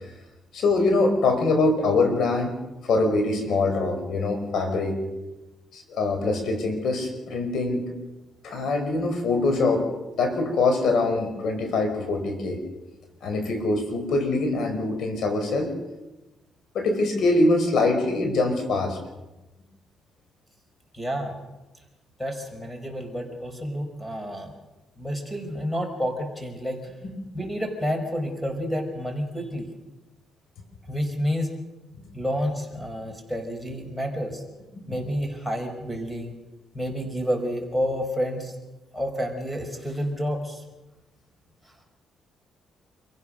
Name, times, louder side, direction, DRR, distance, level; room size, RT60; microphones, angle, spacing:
voice 1, 0.5-2.5 2.8-5.0 5.7-7.9 8.4-9.8 10.2-12.6 13.2-15.7 16.7-19.0 34.8-34.9, left 3 dB, 65° left, 5 dB, 5.2 m, -23 dB
voice 2, 20.9-21.3 22.2-24.5 25.0-26.8 27.3-29.7 30.9-31.5 32.1-34.4 34.9-36.3 36.7-38.5 38.9-40.6, equal, 5° left, 4 dB, 5.1 m, -29 dB
27.5 x 16.0 x 6.5 m, 1.1 s
cardioid pair, 90°, 0 cm